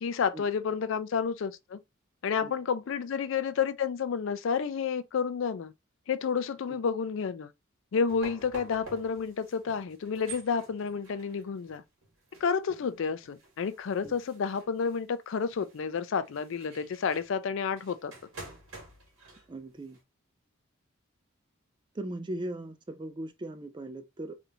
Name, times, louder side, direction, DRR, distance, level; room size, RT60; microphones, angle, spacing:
voice 1, 0.0-1.8 2.2-5.7 6.1-7.5 7.9-11.8 12.4-18.1, left 6 dB, 65° left, 0.4 m, -30 dB
sound 1, 8.1-20.0, right 3 dB, 85° right, 1.8 m, -50 dB
voice 2, 19.5-20.0 21.9-24.3, right 1 dB, 20° right, 0.4 m, -38 dB
3.3 x 2.5 x 2.7 m
head